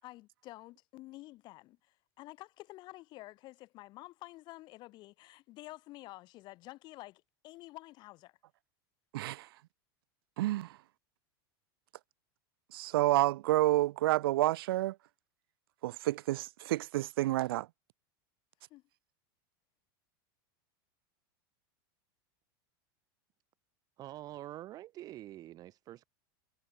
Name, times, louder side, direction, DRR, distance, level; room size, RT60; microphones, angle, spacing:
voice 1, 0.0-8.4 18.7-18.8, left 18 dB, 35° left, 5.0 m, -50 dB
voice 2, 9.1-9.5 10.4-10.8 12.7-15.0 15.8-17.7, right 16 dB, 75° right, 0.8 m, -29 dB
voice 3, 24.0-26.1, right 14 dB, 30° right, 3.1 m, -46 dB
supercardioid pair, 160°, 12 cm